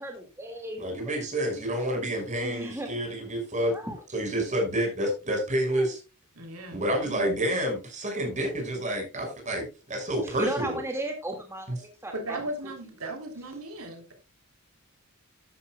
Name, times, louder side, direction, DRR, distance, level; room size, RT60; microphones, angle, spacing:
voice 1, 0.0-1.1 2.4-2.9 3.7-4.0 5.7-5.9 10.2-12.4, right 1 dB, 10° right, 2 dB, 2.1 m, -35 dB
voice 2, 0.8-3.7 4.1-6.0 6.7-10.8 11.7-11.8, right 1 dB, 35° right, 2 dB, 5.7 m, -29 dB
voice 3, 6.3-7.3 12.1-14.1, right 1 dB, 75° right, 4 dB, 3.3 m, -37 dB
13.0 x 11.0 x 2.3 m, 0.30 s
head